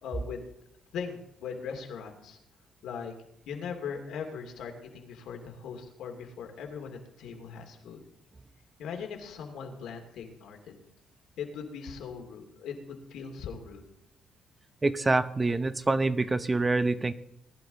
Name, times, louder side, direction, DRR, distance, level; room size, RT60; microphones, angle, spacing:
voice 1, 0.0-0.5 0.9-2.4 2.8-3.1 3.5-8.0 8.8-10.6 11.4-13.9, left 6 dB, 85° left, 3 dB, 2.4 m, -39 dB
voice 2, 14.8-17.1, right 3 dB, 20° right, 13 dB, 0.7 m, -26 dB
19.5 x 11.0 x 4.0 m, 0.79 s
cardioid pair, 90°, 0 cm